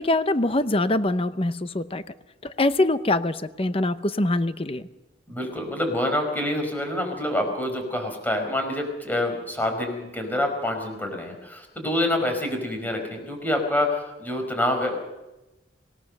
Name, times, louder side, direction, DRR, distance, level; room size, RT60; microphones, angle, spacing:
voice 1, 0.0-2.0 2.4-4.8, left 2 dB, 30° left, 12 dB, 0.8 m, -24 dB
voice 2, 5.3-15.0, left 1 dB, 10° left, 4 dB, 4.9 m, -27 dB
26.0 x 18.0 x 6.7 m, 1.0 s
head